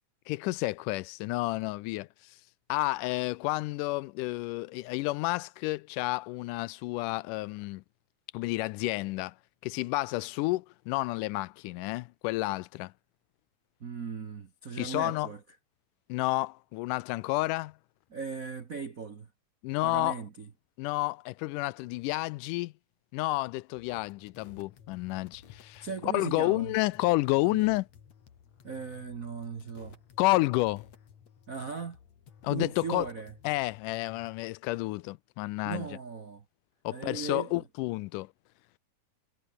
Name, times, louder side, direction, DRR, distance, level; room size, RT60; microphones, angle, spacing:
voice 1, 0.3-2.1 2.7-7.8 8.3-9.3 9.6-12.9 14.7-15.3 16.1-17.7 19.6-20.2 20.8-22.7 23.1-27.9 30.2-30.9 32.4-33.1 33.4-35.9 36.8-38.3, left 20 dB, 80° left, 2.0 m, -30 dB
voice 2, 13.8-15.4 18.1-19.3 19.8-20.5 25.8-26.7 27.4-27.6 28.6-30.0 31.5-32.0 32.5-33.3 35.6-36.4 36.9-37.6, right 5 dB, 90° right, 0.7 m, -38 dB
sound 1, 23.8-34.4, left 7 dB, 55° left, 3.5 m, -56 dB
omnidirectional pair, 3.8 m